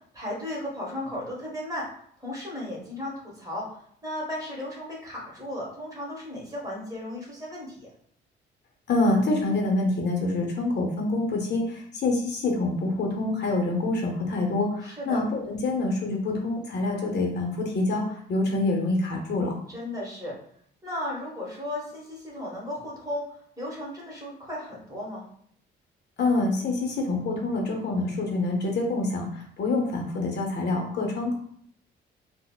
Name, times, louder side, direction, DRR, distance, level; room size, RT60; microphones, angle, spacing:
voice 1, 0.1-1.9 2.2-3.7 4.0-7.9 14.8-15.2 19.7-20.3 20.8-25.3, left 1 dB, 15° right, -4 dB, 1.3 m, -35 dB
voice 2, 8.9-19.5 26.2-31.4, left 2 dB, 60° left, 1 dB, 0.7 m, -26 dB
3.9 x 2.0 x 2.2 m, 0.63 s
cardioid pair, 90°, 20 cm